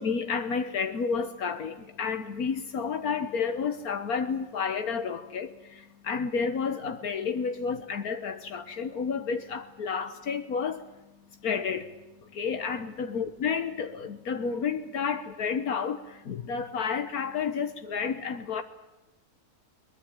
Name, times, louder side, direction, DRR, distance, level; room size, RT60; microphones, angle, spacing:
voice 1, 0.0-10.9 11.4-18.6, left 6 dB, 75° left, 1.7 m, -31 dB
22.5 x 20.5 x 9.0 m
omnidirectional pair, 1.6 m